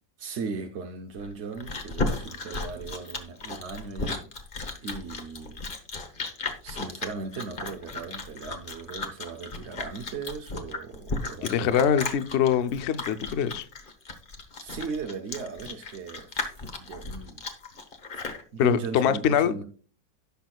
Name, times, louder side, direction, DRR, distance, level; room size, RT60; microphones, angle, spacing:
voice 1, 0.2-4.3 4.8-5.6 5.9-12.1 14.6-17.4 18.5-19.6, right 5 dB, 55° right, 0.8 m, -38 dB
Chewing mastication, 1.2-18.4, left 3 dB, 35° left, 1.1 m, -35 dB
voice 2, 11.4-13.7 18.2-18.3 18.6-19.5, left 8 dB, 65° left, 0.6 m, -24 dB
17.0 x 6.1 x 2.3 m
omnidirectional pair, 1.9 m